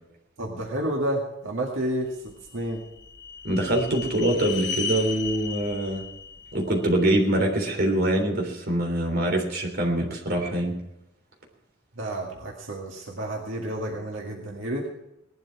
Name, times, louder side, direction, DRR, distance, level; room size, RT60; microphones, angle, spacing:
voice 1, 0.4-2.8 10.0-10.1 12.0-14.9, right 1 dB, 75° right, -1 dB, 2.0 m, -30 dB
sound 1, 2.3-7.5, left 5 dB, 60° left, 1.4 m, -35 dB
voice 2, 3.4-6.0 6.5-10.7, right 1 dB, 55° right, 2 dB, 3.5 m, -24 dB
19.0 x 12.0 x 4.8 m, 0.87 s
head